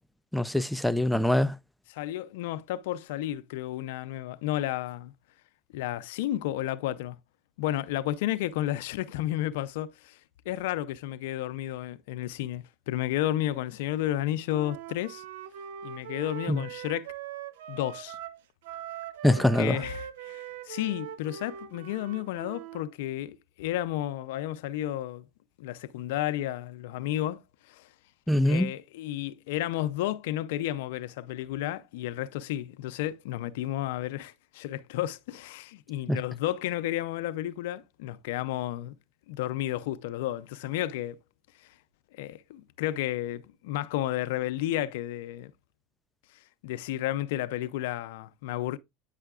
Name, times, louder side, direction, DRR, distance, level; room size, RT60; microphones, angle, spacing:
voice 1, 0.3-1.6 16.5-16.6 19.2-19.8 28.3-28.7 36.1-36.2, left 1 dB, ahead, 0.4 m, -24 dB
voice 2, 1.9-5.1 5.7-7.2 7.6-10.2 10.5-15.2 15.8-17.1 17.7-18.2 19.3-25.3 25.6-27.4 27.7-27.8 28.4-38.9 39.3-41.2 42.2-45.5 46.6-48.8, left 13 dB, 80° left, 0.5 m, -32 dB
Wind instrument woodwind instrument, 14.5-22.9, right 10 dB, 85° right, 0.5 m, -41 dB
8.9 x 5.7 x 2.4 m
supercardioid pair, 100°, 0 cm